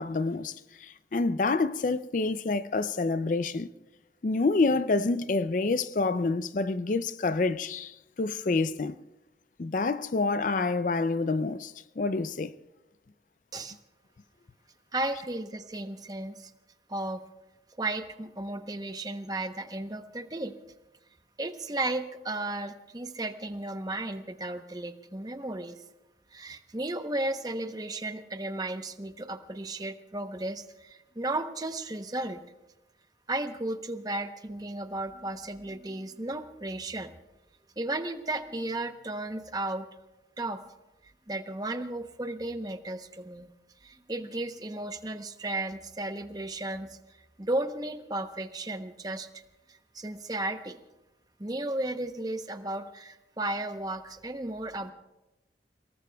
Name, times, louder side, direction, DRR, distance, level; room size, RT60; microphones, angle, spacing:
voice 1, 0.0-3.7 4.2-9.0 9.6-12.5, left 3 dB, 45° left, 0.4 m, -28 dB
voice 2, 14.9-16.5 16.9-17.2 17.8-20.5 21.4-25.8 26.3-32.4 33.3-37.1 37.8-39.9 40.4-40.6 41.3-43.5 43.8-47.0 47.4-49.3 49.7-50.8 51.4-54.9, right 2 dB, 20° right, 0.8 m, -34 dB
29.5 x 18.5 x 2.3 m
head